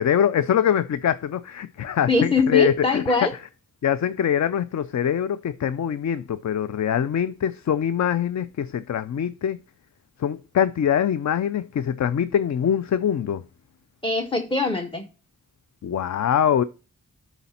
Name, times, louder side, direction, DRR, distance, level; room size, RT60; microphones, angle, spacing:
voice 1, 0.0-3.2 3.8-9.6 10.2-13.4 15.8-16.6, left 9 dB, 50° left, 0.4 m, -23 dB
voice 2, 2.1-3.3 14.0-15.1, left 3 dB, 15° left, 0.8 m, -22 dB
11.0 x 4.1 x 4.2 m
wide cardioid pair, 65°, 36 cm